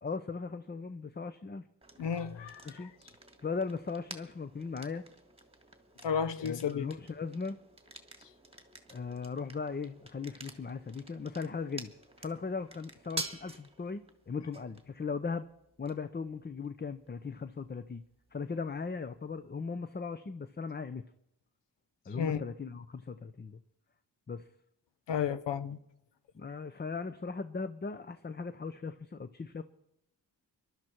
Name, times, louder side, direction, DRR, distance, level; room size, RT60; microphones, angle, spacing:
voice 1, 0.0-1.6 2.6-2.9 3.4-5.0 6.4-7.6 8.9-11.9 12.2-15.5 15.8-18.0 18.3-21.0 22.1-23.6 24.3-24.5 26.3-29.6, left 5 dB, 25° left, 0.7 m, -38 dB
sound 1, 1.8-19.5, right 2 dB, 15° right, 1.8 m, -49 dB
voice 2, 2.0-2.9 6.0-6.9 22.1-22.4 25.1-25.8, left 7 dB, 85° left, 0.9 m, -32 dB
21.5 x 12.0 x 4.5 m
cardioid pair, 80°, 42 cm